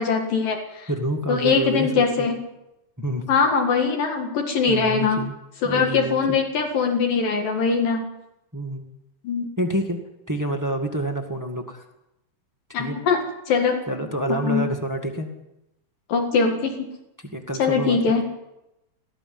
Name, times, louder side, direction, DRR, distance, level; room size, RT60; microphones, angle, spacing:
voice 1, 0.0-0.9 1.3-2.4 3.3-5.2 5.6-8.1 9.2-9.5 12.7-13.2 13.5-13.8 14.4-14.7 16.1-16.9 17.6-18.2, left 5 dB, 75° left, 2 dB, 3.6 m, -22 dB
voice 2, 0.9-2.3 3.0-3.2 4.7-5.3 5.6-6.4 8.5-8.8 9.6-11.8 12.8-13.0 13.9-15.3 17.2-18.0, right 1 dB, 10° right, 4 dB, 0.8 m, -28 dB
19.0 x 14.0 x 9.7 m, 0.91 s
omnidirectional pair, 4.1 m